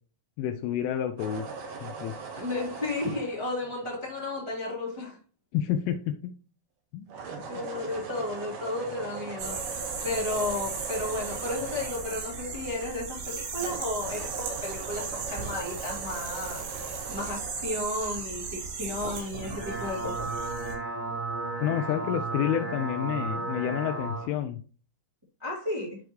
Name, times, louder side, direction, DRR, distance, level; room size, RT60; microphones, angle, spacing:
voice 1, 0.4-1.5 1.8-2.2 5.5-6.3 6.9-7.1 21.6-24.6, left 10 dB, 85° left, 5 dB, 3.1 m, -29 dB
sound 1, 1.2-4.6 7.1-13.2 13.6-17.8, right 4 dB, 65° right, 2.2 m, -40 dB
voice 2, 2.3-5.2 7.5-16.6 17.1-20.3 25.4-26.0, left 2 dB, 15° right, -6 dB, 1.1 m, -33 dB
sound 2, 9.4-20.7, right 5 dB, 85° right, 5.3 m, -37 dB
sound 3, 19.3-24.3, right 3 dB, 45° right, 2.8 m, -34 dB
12.5 x 4.6 x 3.1 m, 0.38 s
omnidirectional pair, 5.7 m